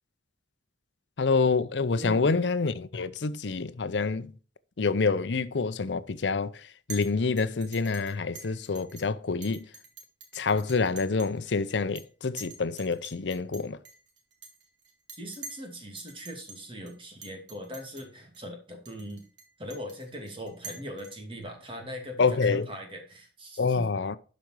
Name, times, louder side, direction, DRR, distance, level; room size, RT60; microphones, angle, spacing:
voice 1, 1.2-4.3 4.8-6.5 6.9-9.7 10.3-13.8 22.2-22.7 23.6-24.2, left 4 dB, 85° left, 0.6 m, -27 dB
voice 2, 2.0-2.3 15.2-19.2 19.6-23.9, equal, 30° right, 2.4 m, -40 dB
Chink clink, 6.9-7.1 7.4-9.0 9.4-11.4 11.7-12.0 12.4-15.7 16.0-16.6 16.9-17.0 17.2-18.0 18.3-18.4 18.9-21.4, right 4 dB, 85° right, 2.6 m, -46 dB
12.0 x 5.2 x 4.6 m
head